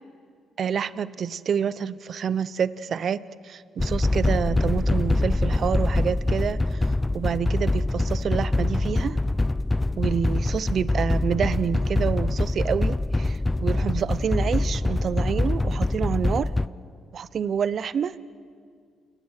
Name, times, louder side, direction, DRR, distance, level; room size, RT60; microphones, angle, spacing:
voice 1, 0.6-3.2 3.4-6.8 7.1-9.2 10.0-16.5 17.1-18.1, right 7 dB, 55° right, 16 dB, 0.7 m, -28 dB
sound 1, 3.8-16.7, left 2 dB, 15° left, 0.5 m, -24 dB
29.5 x 19.0 x 6.5 m, 2.2 s
cardioid pair, 90°, 0 cm